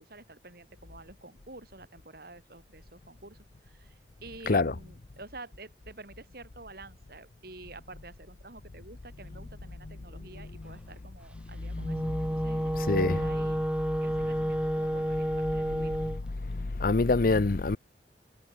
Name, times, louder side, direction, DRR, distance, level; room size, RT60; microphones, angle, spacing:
voice 1, 0.0-3.4 3.6-12.0 12.3-13.6 14.0-16.0, right 2 dB, 60° right, 7.8 m, -49 dB
Wind instrument woodwind instrument, 11.7-16.2, equal, 5° right, 1.1 m, -30 dB
voice 2, 11.8-12.1 12.7-13.3 15.5-16.1 16.5-17.8, left 3 dB, 50° left, 0.7 m, -27 dB
head